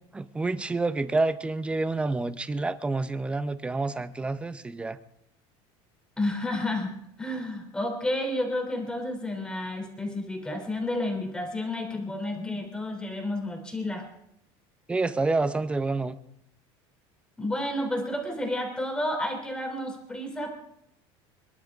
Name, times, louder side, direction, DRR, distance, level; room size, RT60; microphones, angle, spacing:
voice 1, 0.1-5.0 14.9-16.2, right 3 dB, 10° right, 13 dB, 0.7 m, -28 dB
voice 2, 6.2-14.0 17.4-20.5, left 1 dB, 5° left, 3 dB, 3.0 m, -31 dB
27.0 x 11.5 x 3.6 m, 0.75 s
cardioid pair, 155°, 11 cm